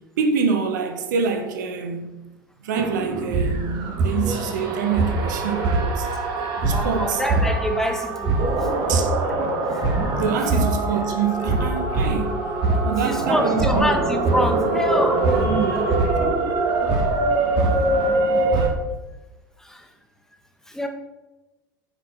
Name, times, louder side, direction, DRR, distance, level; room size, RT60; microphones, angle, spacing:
voice 1, 0.2-2.2 2.6-6.1 6.6-7.2 8.9-9.1 10.2-12.4 12.8-13.9 15.4-15.8 16.2-16.4, right 6 dB, 65° right, 1.7 m, -26 dB
sound 1, 2.7-18.7, right 2 dB, 45° right, 3.0 m, -22 dB
voice 2, 6.7-8.4 13.0-16.0 19.6-19.9 20.7-20.9, left 1 dB, 5° left, 1.8 m, -26 dB
9.3 x 7.6 x 6.1 m
figure-of-eight pair, 80°, 11 cm